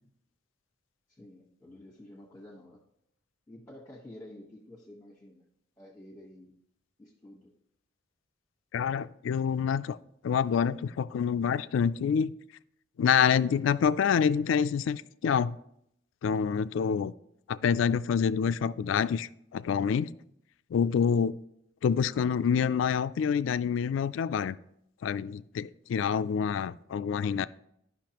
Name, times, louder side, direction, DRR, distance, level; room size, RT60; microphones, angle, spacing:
voice 1, 1.1-2.8 3.5-5.4 5.8-6.5 7.0-7.5, left 1 dB, 15° left, 1.2 m, -50 dB
voice 2, 8.7-10.0 10.2-12.3 13.0-15.6 16.2-17.1 17.5-20.1 20.7-21.4 21.8-24.6 25.0-27.5, left 7 dB, 75° left, 0.3 m, -27 dB
12.5 x 5.5 x 2.9 m
head